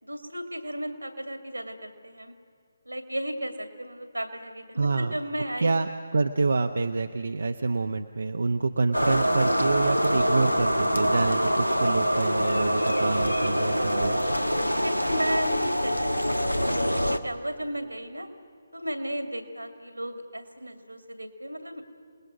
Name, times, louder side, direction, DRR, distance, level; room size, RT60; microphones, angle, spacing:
voice 1, 0.0-2.3 2.9-5.8 14.7-16.7 17.0-18.3 18.7-21.9, equal, 85° right, 8 dB, 2.4 m, -34 dB
voice 2, 4.8-5.1 5.6-14.2, right 3 dB, 60° right, 7 dB, 0.8 m, -27 dB
sound 1, 8.9-17.2, equal, 90° left, 1.3 m, -25 dB
28.0 x 19.5 x 6.2 m, 2.4 s
figure-of-eight pair, 145°, 0 cm